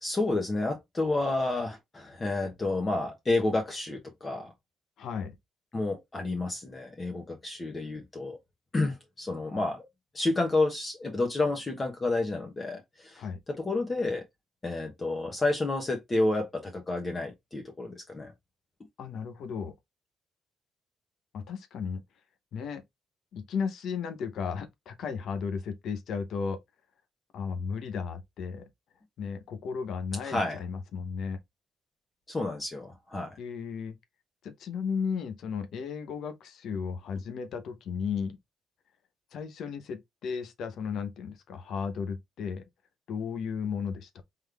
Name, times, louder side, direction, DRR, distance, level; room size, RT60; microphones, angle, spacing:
voice 1, 0.0-4.5 5.7-8.4 8.7-9.9 10.1-13.2 13.6-14.2 14.6-18.3 30.2-30.6 32.3-33.3, left 2 dB, 30° left, 1.1 m, -30 dB
voice 2, 5.0-5.4 13.2-13.4 19.0-19.7 21.3-22.0 22.5-22.8 23.3-26.6 27.3-28.7 29.2-31.4 33.4-34.0 34.4-38.4 39.3-42.6 43.1-44.2, left 6 dB, 70° left, 0.8 m, -34 dB
3.8 x 3.1 x 3.4 m
cardioid pair, 90°, 0 cm